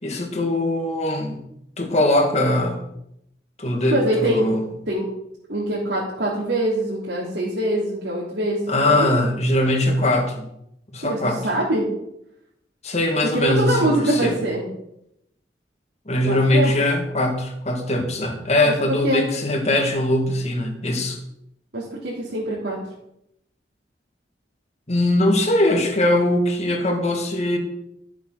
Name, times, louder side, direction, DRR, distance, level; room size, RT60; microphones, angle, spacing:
voice 1, 0.0-1.4 1.8-2.9 3.6-4.7 8.7-10.5 10.9-11.4 12.8-14.4 16.1-21.2 24.9-27.6, left 1 dB, 40° left, 3 dB, 2.3 m, -21 dB
voice 2, 3.9-4.5 4.9-5.1 5.5-9.1 11.0-11.9 13.2-14.7 16.2-16.7 18.6-19.3 21.7-22.8, right 1 dB, 75° right, -7 dB, 3.3 m, -24 dB
13.5 x 7.2 x 6.0 m, 0.78 s
head